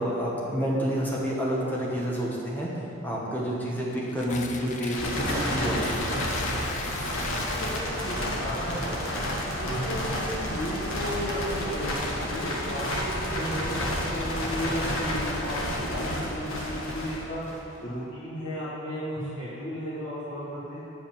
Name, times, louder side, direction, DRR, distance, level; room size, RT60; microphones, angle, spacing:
voice 1, 0.0-2.7 3.0-6.3 9.6-9.9 19.2-19.3, equal, 10° left, -5 dB, 1.3 m, -29 dB
Tearing, 3.8-10.1, left 5 dB, 35° left, 0.4 m, -41 dB
sound 1, 4.2-14.8, right 2 dB, 40° right, 0.5 m, -43 dB
sound 2, 4.9-17.8, left 1 dB, 90° left, 1.4 m, -30 dB
voice 2, 7.5-9.0 9.4-20.8, equal, 70° left, -10 dB, 1.6 m, -34 dB
8.3 x 5.0 x 7.3 m, 2.9 s
head